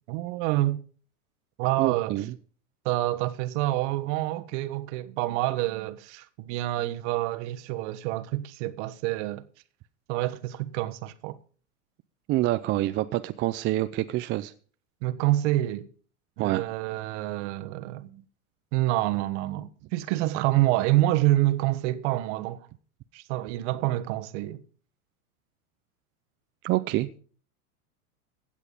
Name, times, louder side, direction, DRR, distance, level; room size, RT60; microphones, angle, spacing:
voice 1, 0.1-0.8 1.6-2.1 2.8-9.4 10.1-11.4 15.0-15.8 16.4-18.2 18.7-22.7 23.1-24.6, right 16 dB, 50° right, 1.3 m, -27 dB
voice 2, 1.8-2.3 12.3-14.5 16.4-16.6 26.6-27.2, right 16 dB, 25° right, 0.5 m, -27 dB
16.0 x 8.2 x 5.3 m
hypercardioid pair, 115°, 44 cm